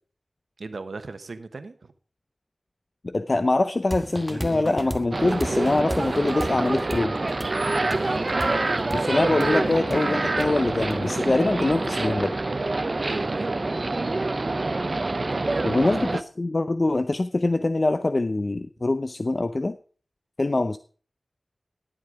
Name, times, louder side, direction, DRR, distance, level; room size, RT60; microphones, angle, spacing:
voice 1, 0.6-1.9 7.8-8.7 13.0-13.6 15.3-16.0 18.8-18.9, right 3 dB, 85° right, 10 dB, 0.9 m, -37 dB
voice 2, 3.0-7.1 8.9-12.4 15.7-16.0 16.4-19.8 20.4-20.8, left 2 dB, 50° left, 11 dB, 0.5 m, -24 dB
sound 1, 3.9-11.5, equal, 5° right, 1.2 m, -35 dB
sound 2, 5.1-16.2, right 2 dB, 50° right, 0.6 m, -26 dB
11.0 x 7.5 x 4.7 m, 0.41 s
wide cardioid pair, 65°, 0 cm